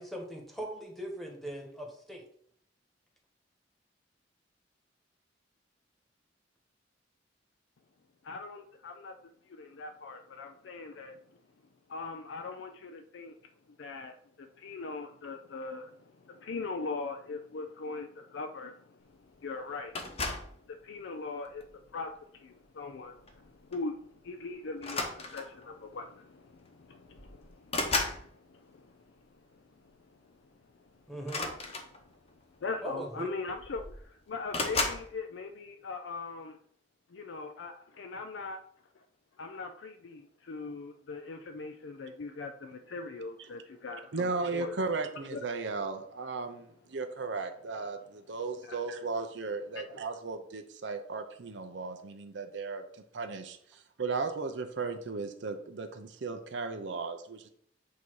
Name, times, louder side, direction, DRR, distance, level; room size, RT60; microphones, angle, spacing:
voice 1, 0.0-2.2 31.1-31.5 32.8-33.3, equal, ahead, 0 dB, 1.3 m, -39 dB
voice 2, 8.2-9.2 9.5-11.2 11.9-13.4 13.8-20.0 20.7-29.1 29.5-29.9 32.1-32.2 32.6-36.6 37.1-38.6 39.0-39.1 39.4-44.8 45.3-45.4 48.6-48.8 49.8-50.0, left 3 dB, 75° left, 6 dB, 0.4 m, -41 dB
sound 1, 19.9-20.6 21.4-21.8 23.3-23.4 23.7-23.9 24.8-25.6 26.7-26.8 27.1-28.2 31.2-32.3 33.2-33.3 33.5-34.0 34.5-35.1, left 3 dB, 35° left, 0.9 m, -34 dB
voice 3, 44.1-57.5, right 4 dB, 65° right, 6 dB, 0.6 m, -36 dB
8.3 x 2.8 x 4.6 m, 0.63 s
head